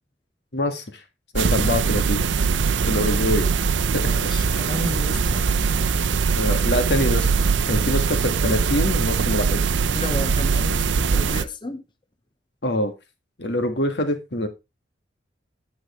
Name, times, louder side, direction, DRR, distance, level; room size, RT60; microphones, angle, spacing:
voice 1, 0.5-1.0 1.3-2.3 2.9-3.5 3.9-4.3 6.4-7.3 7.7-9.8 12.6-12.9 13.4-14.5, left 1 dB, 65° left, 1.6 m, -25 dB
sound 1, 1.4-11.5, right 5 dB, 80° right, 0.6 m, -21 dB
voice 2, 4.1-5.4 9.9-11.8, left 1 dB, 25° left, 0.7 m, -33 dB
9.1 x 7.6 x 3.0 m
head